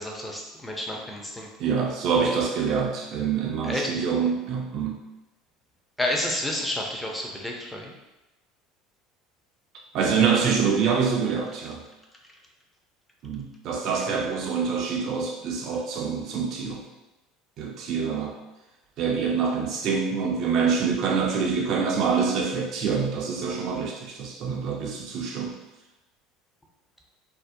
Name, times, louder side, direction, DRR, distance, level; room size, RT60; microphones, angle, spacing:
voice 1, 0.0-1.5 2.2-2.3 3.6-4.0 6.0-7.9 14.0-14.2, left 1 dB, 10° left, 0 dB, 0.5 m, -30 dB
voice 2, 1.6-5.0 9.9-11.8 13.2-16.8 17.6-18.3 19.0-25.6, right 6 dB, 55° right, 0 dB, 0.3 m, -26 dB
2.5 x 2.0 x 2.5 m, 1.0 s
hypercardioid pair, 70°, 0 cm